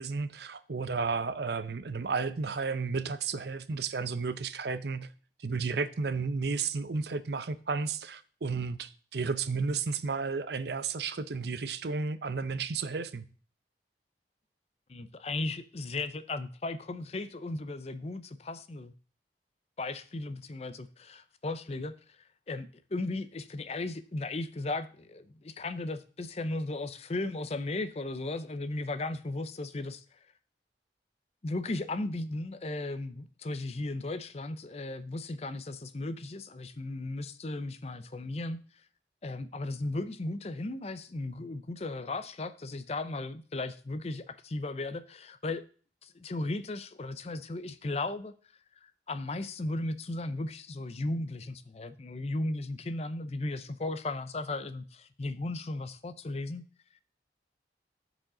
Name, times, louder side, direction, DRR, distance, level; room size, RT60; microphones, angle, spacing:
voice 1, 0.0-5.1 5.4-13.2, right 4 dB, 65° right, 0.6 m, -32 dB
voice 2, 14.9-18.9 19.8-21.9 22.5-30.0 31.4-38.6 39.2-45.7 46.0-48.3 48.8-56.6, left 2 dB, 35° left, 0.5 m, -36 dB
14.0 x 5.0 x 3.8 m
head